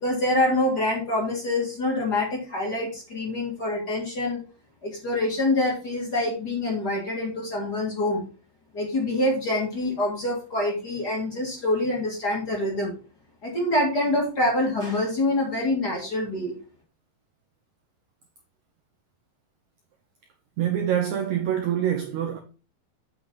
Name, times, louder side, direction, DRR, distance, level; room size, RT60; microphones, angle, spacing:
voice 1, 0.0-4.4 4.8-8.3 8.7-13.0 13.4-16.5, left 1 dB, 30° left, 2.1 m, -26 dB
voice 2, 20.6-22.4, right 10 dB, 90° right, 1.6 m, -25 dB
7.9 x 6.2 x 4.0 m
omnidirectional pair, 4.4 m